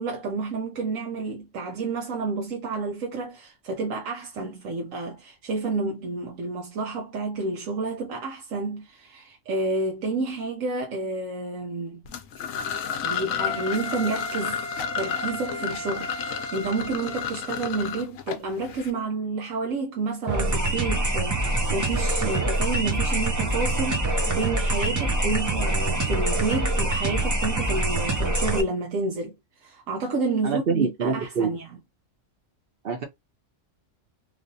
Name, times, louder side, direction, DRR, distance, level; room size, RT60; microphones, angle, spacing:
voice 1, 0.0-12.0 13.0-14.6 15.0-31.7, right 3 dB, 85° right, 1.1 m, -30 dB
sound 1, 12.1-18.9, left 8 dB, 90° left, 1.0 m, -32 dB
Wind instrument woodwind instrument, 13.3-18.1, left 1 dB, 65° left, 0.9 m, -36 dB
sound 2, 20.3-28.6, right 2 dB, 30° right, 0.3 m, -25 dB
voice 2, 30.4-31.5 32.8-33.0, right 5 dB, 55° right, 0.8 m, -25 dB
3.0 x 2.4 x 2.6 m
omnidirectional pair, 1.3 m